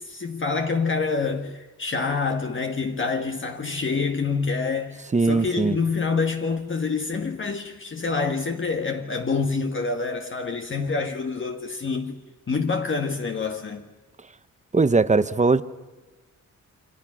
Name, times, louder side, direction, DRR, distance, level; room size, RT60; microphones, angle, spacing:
voice 1, 0.0-12.2 12.5-13.9, left 4 dB, 35° left, 1.5 m, -27 dB
voice 2, 5.1-5.8 14.7-15.6, right 3 dB, 20° right, 0.9 m, -20 dB
28.0 x 26.5 x 6.2 m
wide cardioid pair, 135°, 32 cm